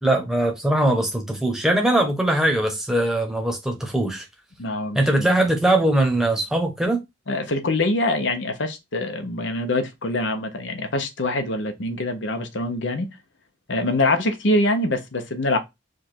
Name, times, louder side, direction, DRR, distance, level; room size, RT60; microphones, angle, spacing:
voice 1, 0.0-4.3 4.9-7.0, right 1 dB, 5° right, 1.0 m, -21 dB
voice 2, 4.6-5.3 7.3-13.1 13.7-15.6, left 2 dB, 75° left, 0.9 m, -24 dB
5.0 x 2.5 x 4.3 m
head